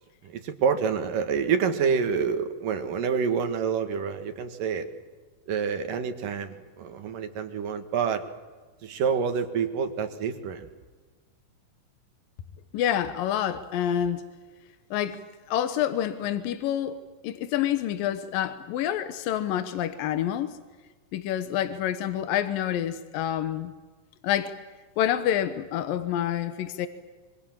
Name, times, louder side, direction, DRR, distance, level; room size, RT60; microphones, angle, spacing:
voice 1, 0.2-4.9 5.5-8.3 8.8-10.7, right 6 dB, 75° right, 7 dB, 3.4 m, -27 dB
voice 2, 12.7-14.2 14.9-15.2 15.5-17.0 17.2-20.5 21.1-23.7 24.2-24.5 25.0-26.9, left 10 dB, 85° left, 11 dB, 2.8 m, -27 dB
26.5 x 24.5 x 7.4 m, 1.3 s
omnidirectional pair, 3.9 m